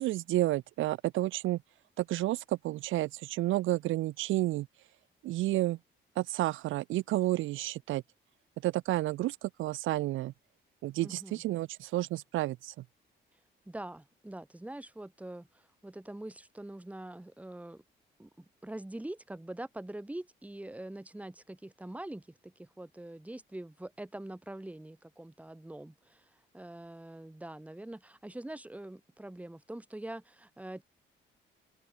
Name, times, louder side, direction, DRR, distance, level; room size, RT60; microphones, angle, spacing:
voice 1, 0.0-1.6 2.0-4.7 5.2-5.8 6.2-8.0 8.6-10.3 10.8-12.7, right 16 dB, 85° right, 0.8 m, -31 dB
voice 2, 11.0-11.4 13.7-15.5 15.8-17.8 18.2-26.2 26.5-30.8, right 1 dB, 5° right, 1.4 m, -44 dB
open air
cardioid pair, 90°, 20 cm